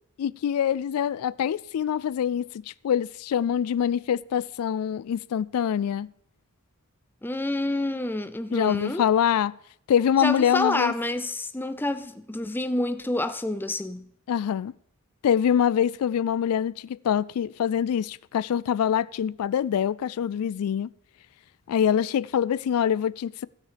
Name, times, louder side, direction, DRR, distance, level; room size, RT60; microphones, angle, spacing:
voice 1, 0.2-2.5 2.8-6.1 8.5-9.5 9.9-10.9 14.3-14.7 15.2-20.9 21.7-23.5, left 8 dB, 85° left, 0.3 m, -24 dB
voice 2, 7.2-9.1 10.2-14.1, left 1 dB, 10° left, 0.4 m, -28 dB
15.5 x 6.4 x 5.0 m
head